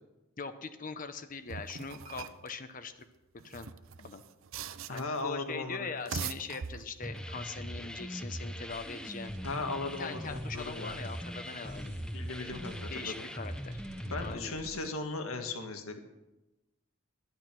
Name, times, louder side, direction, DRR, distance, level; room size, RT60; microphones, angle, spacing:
voice 1, 0.4-2.9 3.4-3.7 4.0-4.2 4.9-9.3 10.0-11.9 12.9-13.8 14.2-14.6, left 5 dB, 40° left, 9 dB, 0.7 m, -41 dB
sound 1, 1.5-2.5 3.4-5.2 5.9-7.2, right 6 dB, 70° right, 0.6 m, -41 dB
voice 2, 4.9-5.9 9.4-10.9 12.1-13.1 14.1-16.0, left 3 dB, 80° left, 5 dB, 1.7 m, -37 dB
sound 2, 7.0-14.4, equal, 5° left, 0.7 m, -40 dB
sound 3, 8.7-14.9, right 1 dB, 50° right, 1.6 m, -54 dB
12.0 x 11.0 x 6.1 m, 1.0 s
head